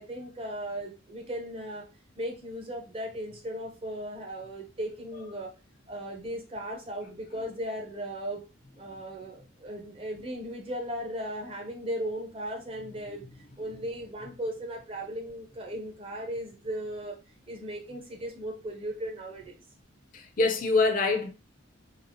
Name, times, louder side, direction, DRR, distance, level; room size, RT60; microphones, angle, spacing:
voice 1, 0.0-1.8 2.2-5.5 5.9-8.4 8.8-13.2 13.6-17.1 17.5-19.6, equal, 25° right, 0.7 m, -37 dB
voice 2, 20.1-21.3, left 3 dB, 40° left, 0.5 m, -25 dB
3.8 x 2.0 x 2.9 m
head